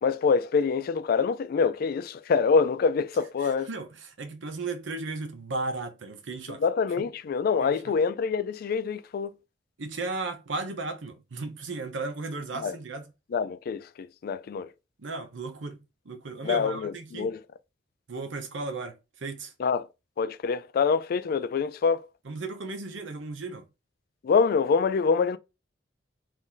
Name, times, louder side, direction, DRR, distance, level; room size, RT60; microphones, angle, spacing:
voice 1, 0.0-3.7 6.6-9.3 12.6-12.7 13.3-14.7 16.4-17.4 19.6-19.9 20.2-22.1 24.2-25.4, left 5 dB, 55° left, 0.3 m, -25 dB
voice 2, 3.4-6.6 7.0-7.1 7.6-7.9 9.8-13.1 15.0-15.8 16.1-17.3 18.1-19.5 22.2-23.6, right 3 dB, 90° right, 0.8 m, -35 dB
3.0 x 2.6 x 3.8 m
head